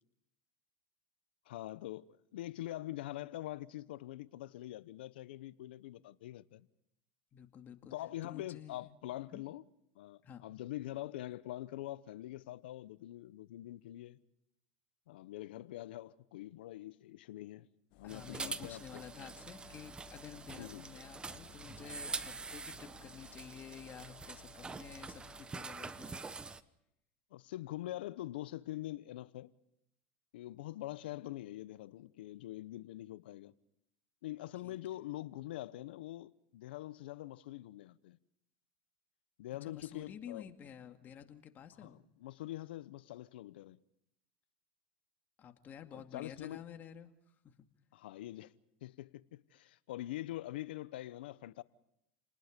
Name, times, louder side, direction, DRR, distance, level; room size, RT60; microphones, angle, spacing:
voice 1, 1.5-6.7 7.9-9.6 9.9-14.2 15.1-17.7 17.9-19.0 20.6-20.8 27.3-29.5 30.3-33.5 34.2-38.2 39.4-40.5 41.8-43.8 45.9-46.6 47.9-48.5 48.8-51.6, left 15 dB, 80° left, 0.9 m, -44 dB
voice 2, 7.3-7.9 8.2-8.9 9.3-9.4 10.2-10.5 18.0-26.2 34.6-34.8 39.6-42.0 45.4-47.1 47.4-47.5, left 8 dB, 35° left, 2.2 m, -51 dB
Engine, 17.9-25.4, left 10 dB, 65° left, 1.6 m, -60 dB
sound 1, 18.1-26.6, right 4 dB, 15° right, 1.0 m, -45 dB
29.5 x 20.0 x 5.2 m
supercardioid pair, 110°, 5 cm